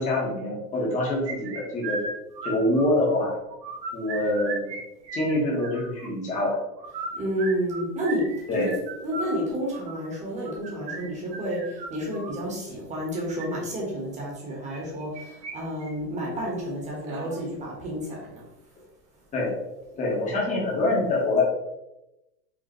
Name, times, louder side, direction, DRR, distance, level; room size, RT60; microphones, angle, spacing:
voice 1, 0.0-2.0 2.4-3.3 3.9-4.7 5.1-6.6 8.5-8.7 19.3-19.5 20.0-21.4, left 2 dB, 15° left, -3 dB, 1.0 m, -25 dB
sound 1, 1.3-3.2 3.5-4.8 5.0-6.1 6.8-12.4 13.2-13.5 14.7-15.5 15.8-15.9 16.3-16.4 17.0-17.4, right 3 dB, 85° right, 1.3 m, -36 dB
voice 2, 7.2-8.2 8.5-8.7 9.0-18.4, equal, 15° right, -3 dB, 1.1 m, -30 dB
5.1 x 2.7 x 2.9 m, 0.90 s
supercardioid pair, 155°, 50 cm